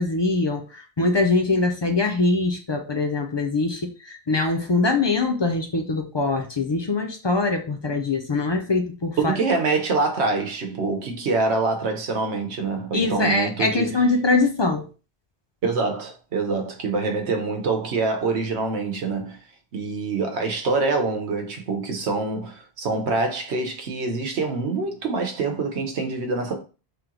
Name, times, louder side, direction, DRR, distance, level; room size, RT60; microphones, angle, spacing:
voice 1, 0.0-9.4 12.9-14.9, left 3 dB, 45° left, 0.3 m, -23 dB
voice 2, 9.2-14.0 15.6-19.4 19.7-26.6, right 3 dB, 75° right, 1.1 m, -25 dB
3.4 x 3.0 x 3.7 m
omnidirectional pair, 1.1 m